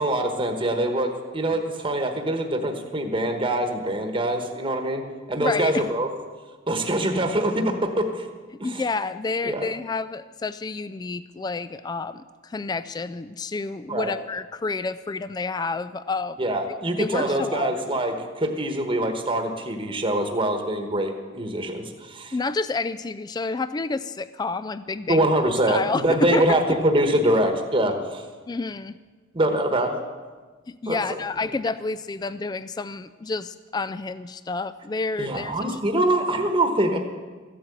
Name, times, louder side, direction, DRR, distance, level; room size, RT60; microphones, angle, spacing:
voice 1, 0.0-5.0 5.3-6.1 6.7-8.3 8.6-8.8 9.4-9.7 13.9-14.1 16.4-22.3 25.1-28.2 29.3-30.0 30.9-31.2 35.2-37.0, right 1 dB, 25° right, 5 dB, 1.2 m, -24 dB
voice 2, 5.4-5.9 8.6-16.5 16.9-17.7 22.3-25.3 25.7-26.6 28.5-29.0 30.7-35.8, left 3 dB, 20° left, 14 dB, 0.3 m, -29 dB
14.0 x 8.5 x 8.0 m, 1.4 s
head